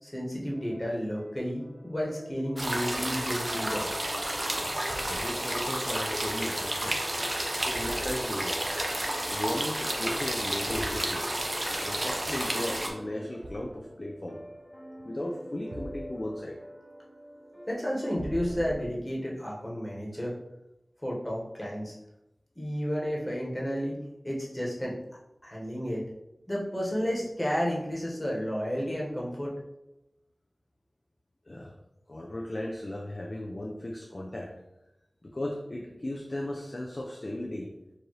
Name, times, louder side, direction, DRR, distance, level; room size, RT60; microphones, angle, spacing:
voice 1, 0.0-3.8 17.7-20.3 21.0-21.9 22.5-24.0 24.2-24.9 25.4-26.0 26.5-29.5, equal, 20° left, -4 dB, 1.3 m, -32 dB
sound 1, 0.5-18.8, equal, 5° left, 1.1 m, -47 dB
sound 2, 2.6-12.9, right 1 dB, 40° right, 0.7 m, -31 dB
voice 2, 4.6-7.0 7.7-8.7 9.3-11.3 11.8-14.4 15.0-16.6 31.5-31.8 32.1-34.6 35.2-37.7, left 1 dB, 45° left, 0 dB, 0.5 m, -36 dB
Thump thud, 4.8-5.4 7.7-8.4 10.7-11.1 13.4-13.9 15.7-16.3 18.1-19.1, right 1 dB, 90° right, 0.3 m, -42 dB
4.5 x 2.6 x 3.1 m, 0.90 s
wide cardioid pair, 45°, 0 cm